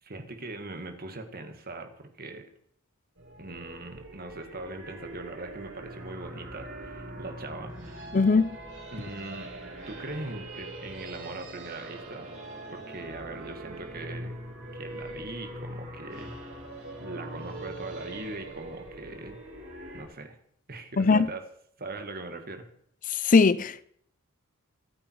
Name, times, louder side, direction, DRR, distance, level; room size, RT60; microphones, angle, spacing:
voice 1, 0.0-2.5 3.4-8.2 8.9-9.5 9.9-12.3 12.7-14.3 14.7-16.3 17.0-19.4 19.9-20.4 20.7-21.4 21.8-22.7, right 2 dB, 45° right, 2.0 m, -40 dB
sound 1, 3.2-20.0, right 1 dB, 60° right, 6.1 m, -42 dB
voice 2, 8.1-8.5 21.0-21.3 23.1-23.8, left 4 dB, 35° left, 0.5 m, -20 dB
24.0 x 8.8 x 4.8 m
head